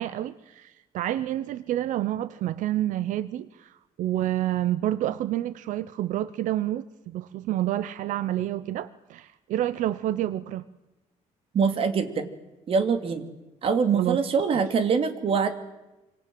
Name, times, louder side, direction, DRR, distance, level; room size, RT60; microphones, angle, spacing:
voice 1, 0.0-10.7 13.9-14.2, right 13 dB, 75° right, 16 dB, 0.8 m, -29 dB
voice 2, 11.5-12.3 12.7-13.3 13.6-15.5, right 5 dB, 45° right, 9 dB, 2.7 m, -24 dB
26.5 x 26.0 x 7.8 m, 1.0 s
cardioid pair, 145°, 13 cm